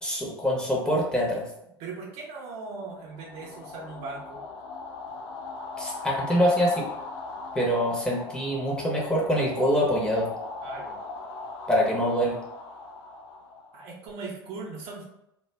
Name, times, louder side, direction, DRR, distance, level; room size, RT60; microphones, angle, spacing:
voice 1, 0.0-1.4 5.8-6.9 7.5-10.3 11.7-12.4, equal, 5° left, -4 dB, 0.7 m, -24 dB
voice 2, 1.8-4.4 10.6-11.0 13.7-15.0, right 4 dB, 45° right, -1 dB, 0.7 m, -39 dB
sound 1, 3.0-14.1, left 3 dB, 50° left, 0.4 m, -39 dB
2.2 x 2.2 x 3.2 m, 0.81 s
figure-of-eight pair, 75°, 14 cm